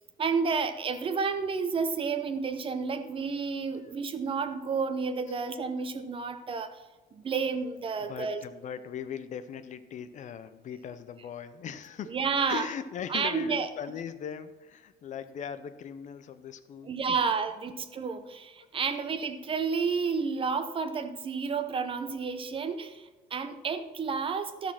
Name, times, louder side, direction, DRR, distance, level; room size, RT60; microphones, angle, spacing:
voice 1, 0.2-6.8 7.1-8.4 11.2-11.3 12.0-12.8 13.1-13.9 16.8-24.7, right 5 dB, 30° right, 9 dB, 0.8 m, -31 dB
voice 2, 8.0-17.3 17.7-17.8 18.9-19.0, left 8 dB, 45° left, 12 dB, 0.6 m, -40 dB
13.0 x 6.4 x 5.8 m, 1.2 s
cardioid pair, 145°, 18 cm